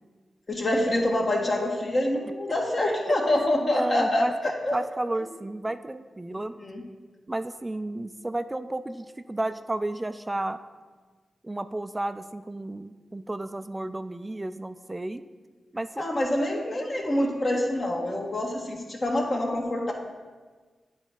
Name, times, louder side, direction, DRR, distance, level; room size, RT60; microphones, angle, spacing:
voice 1, 0.5-4.7 6.6-6.8 16.0-19.9, left 1 dB, 50° left, 0 dB, 1.5 m, -26 dB
voice 2, 3.7-4.3 4.7-6.5 7.3-10.6 11.4-15.2 15.7-16.1, right 2 dB, 25° right, 11 dB, 0.4 m, -32 dB
8.9 x 3.5 x 5.8 m, 1.4 s
supercardioid pair, 40°, 0 cm